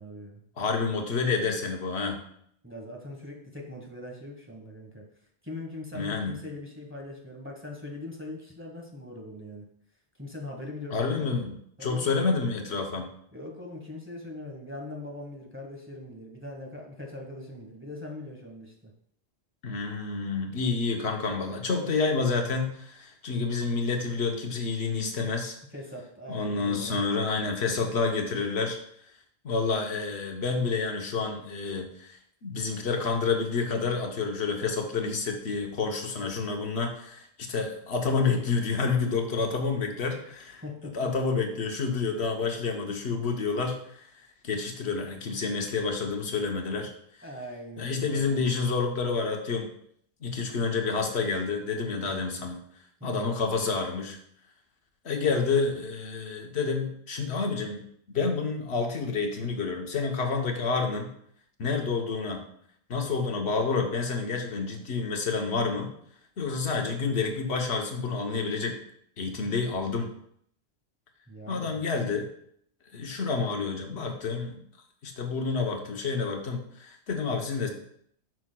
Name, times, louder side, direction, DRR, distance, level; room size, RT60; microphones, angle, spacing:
voice 1, 0.0-0.4 2.6-5.0 5.4-9.6 10.2-11.4 11.8-12.2 13.3-18.9 25.7-27.1 40.6-41.1 47.2-48.6 53.0-53.3 71.3-72.2, left 1 dB, 10° right, 0 dB, 1.1 m, -41 dB
voice 2, 0.6-2.2 5.9-6.4 10.9-13.1 19.6-25.6 26.3-28.8 29.4-40.6 40.9-46.9 47.8-49.7 50.2-52.6 53.0-54.2 55.0-57.8 58.1-61.1 61.6-62.4 62.9-65.9 66.4-68.8 69.2-70.1 71.5-72.3 72.9-74.6 75.0-77.7, left 4 dB, 70° left, 3 dB, 1.1 m, -29 dB
9.0 x 5.9 x 2.2 m, 0.67 s
omnidirectional pair, 1.1 m